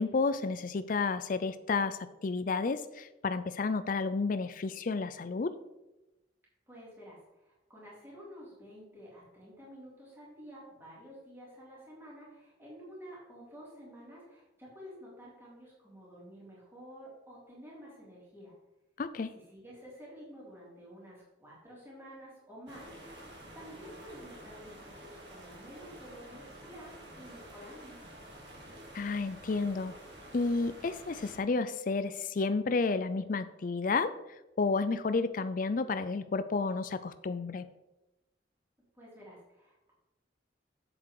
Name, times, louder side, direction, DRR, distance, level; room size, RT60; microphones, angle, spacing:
voice 1, 0.0-5.5 19.0-19.3 28.9-29.9 30.3-34.1 34.6-37.7, left 4 dB, 45° left, 12 dB, 0.4 m, -31 dB
voice 2, 6.7-18.5 19.3-22.9 23.5-28.0 38.9-39.9, equal, 10° right, -7 dB, 3.5 m, -50 dB
sound 1, 22.7-31.4, right 1 dB, 70° right, 2.6 m, -50 dB
8.0 x 7.5 x 4.8 m, 0.97 s
head